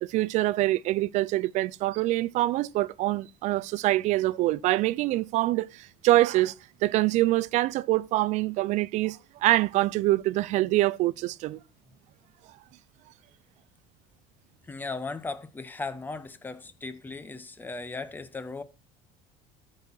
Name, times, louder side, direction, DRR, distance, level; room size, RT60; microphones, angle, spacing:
voice 1, 0.0-6.5 6.8-11.6, right 17 dB, 55° right, 0.4 m, -25 dB
voice 2, 14.6-18.6, left 3 dB, 15° left, 0.9 m, -37 dB
13.5 x 5.6 x 4.3 m
cardioid pair, 145°, 15 cm